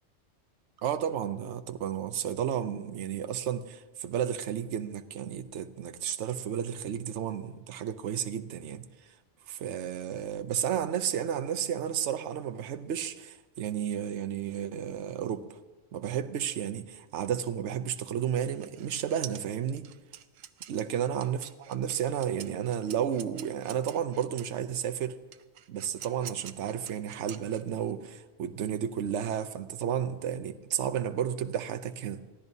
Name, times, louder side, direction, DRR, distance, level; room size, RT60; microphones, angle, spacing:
voice 1, 0.8-8.8 9.5-15.6 15.9-19.9 20.7-25.2 25.7-32.2, right 9 dB, 65° right, 1.0 m, -32 dB
sound 1, 18.3-24.6 25.3-27.9, right 10 dB, 90° right, 1.0 m, -46 dB
23.0 x 15.5 x 2.7 m
omnidirectional pair, 1.3 m